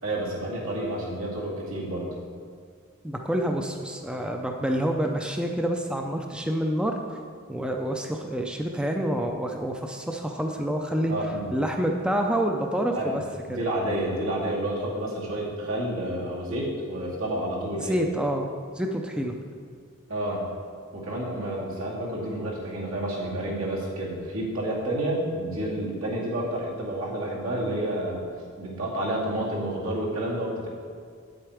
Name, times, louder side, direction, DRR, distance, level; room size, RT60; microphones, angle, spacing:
voice 1, 0.0-2.1 11.1-11.5 12.9-13.2 13.5-18.0 20.1-20.4 20.9-28.2 28.6-30.7, right 1 dB, 80° right, -4 dB, 2.4 m, -30 dB
voice 2, 3.0-7.2 7.5-11.1 11.5-13.2 13.5-13.6 17.8-18.5 18.7-19.3, equal, 5° right, 2 dB, 0.4 m, -27 dB
8.3 x 7.7 x 4.9 m, 2.1 s
head